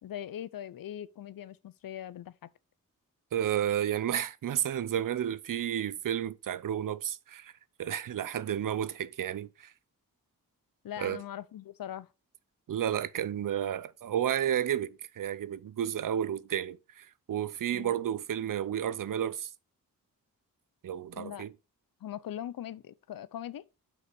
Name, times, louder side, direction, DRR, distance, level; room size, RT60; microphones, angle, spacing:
voice 1, 0.0-2.5 10.8-12.1 17.7-17.9 21.1-21.5 22.0-23.6, left 11 dB, 75° left, 0.6 m, -41 dB
voice 2, 3.3-7.5 7.8-9.7 11.0-11.2 12.7-19.5 20.8-21.5, right 10 dB, 65° right, 0.6 m, -32 dB
6.0 x 5.6 x 6.1 m
wide cardioid pair, 160°, 35 cm